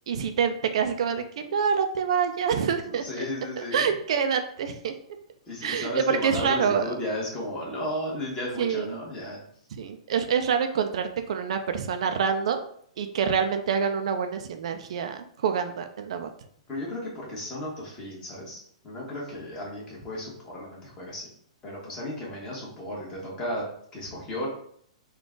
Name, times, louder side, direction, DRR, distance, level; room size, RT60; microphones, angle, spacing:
voice 1, 0.1-3.3 3.7-4.9 5.6-6.9 8.6-9.0 9.7-12.6 13.0-16.3, right 6 dB, 65° right, 7 dB, 0.4 m, -26 dB
voice 2, 2.9-3.9 5.5-9.4 16.7-18.6 18.8-21.3 21.6-23.6 23.9-24.5, left 1 dB, 20° left, -4 dB, 1.5 m, -34 dB
3.8 x 2.4 x 3.7 m, 0.64 s
hypercardioid pair, 135°, 3 cm